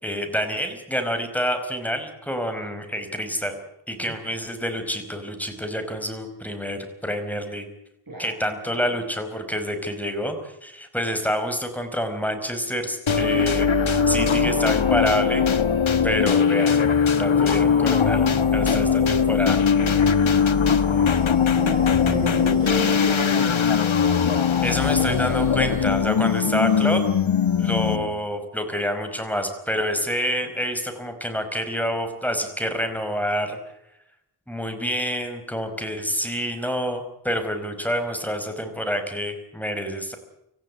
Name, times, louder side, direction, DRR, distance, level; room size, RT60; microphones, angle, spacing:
voice 1, 0.0-3.6 3.9-7.6 8.2-15.4 16.0-16.8 17.1-19.6 24.6-27.0 27.6-33.6 34.5-40.2, equal, 5° left, 7 dB, 5.1 m, -27 dB
sound 1, 13.1-28.2, left 6 dB, 75° left, 1.4 m, -20 dB
voice 2, 14.3-14.7 18.6-19.1 19.7-23.6 26.1-27.0, right 1 dB, 45° right, -2 dB, 6.5 m, -34 dB
sound 2, 26.2-26.4, left 4 dB, 25° left, 1.3 m, -41 dB
27.0 x 14.5 x 8.5 m, 0.82 s
wide cardioid pair, 65°, 47 cm